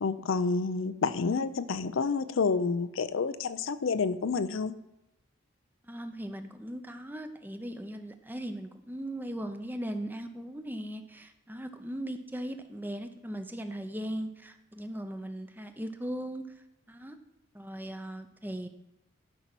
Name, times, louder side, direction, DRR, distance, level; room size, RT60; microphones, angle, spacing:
voice 1, 0.0-4.7, left 4 dB, 65° left, 13 dB, 0.5 m, -29 dB
voice 2, 5.9-16.4 16.9-17.2 17.5-18.7, right 1 dB, 10° right, 8 dB, 0.6 m, -38 dB
12.0 x 5.4 x 6.1 m, 0.88 s
head